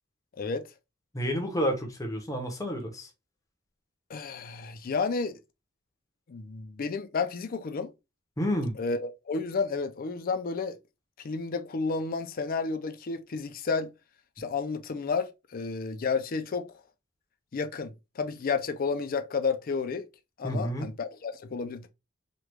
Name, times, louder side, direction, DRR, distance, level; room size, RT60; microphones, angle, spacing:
voice 1, 1.1-3.1 8.4-8.7 20.4-20.9, equal, 15° left, 0.7 m, -30 dB
voice 2, 4.1-5.4 6.3-7.9 8.8-10.8 11.2-13.9 14.4-16.7 17.5-20.1 20.4-21.9, left 4 dB, 45° left, 0.4 m, -31 dB
3.0 x 2.3 x 3.3 m
head